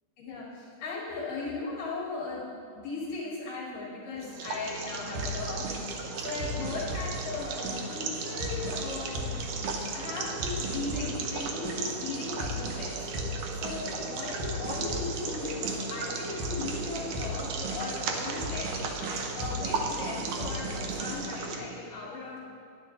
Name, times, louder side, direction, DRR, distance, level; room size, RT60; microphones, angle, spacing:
voice 1, 0.2-2.5 2.8-9.3 9.9-13.1 13.5-18.7 19.0-22.4, left 3 dB, 70° left, -5 dB, 3.2 m, -37 dB
sound 1, 4.2-21.6, right 4 dB, 70° right, 1.5 m, -36 dB
sound 2, 5.1-21.1, equal, 90° right, 3.2 m, -37 dB
11.0 x 10.5 x 3.8 m, 2.3 s
omnidirectional pair, 3.9 m